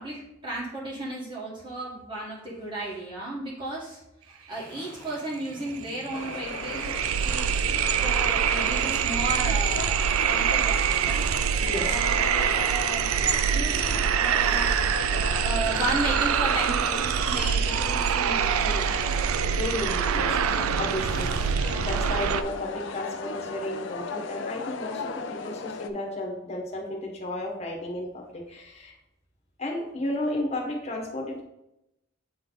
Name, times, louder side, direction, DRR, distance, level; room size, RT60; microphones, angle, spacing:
voice 1, 0.0-4.0 4.2-7.5 8.0-11.2 11.8-13.1 13.5-14.7 15.1-19.1, right 1 dB, 25° right, -6 dB, 1.5 m, -34 dB
sound 1, 4.5-22.3, left 2 dB, 5° left, 1.6 m, -48 dB
sound 2, 5.4-5.5 5.7-22.4, right 7 dB, 85° right, 0.4 m, -25 dB
sound 3, 6.1-25.9, left 4 dB, 60° left, 0.4 m, -37 dB
voice 2, 19.6-21.3 21.8-28.9 29.6-31.4, left 1 dB, 30° left, -1 dB, 1.3 m, -33 dB
7.8 x 3.3 x 3.9 m, 0.86 s
head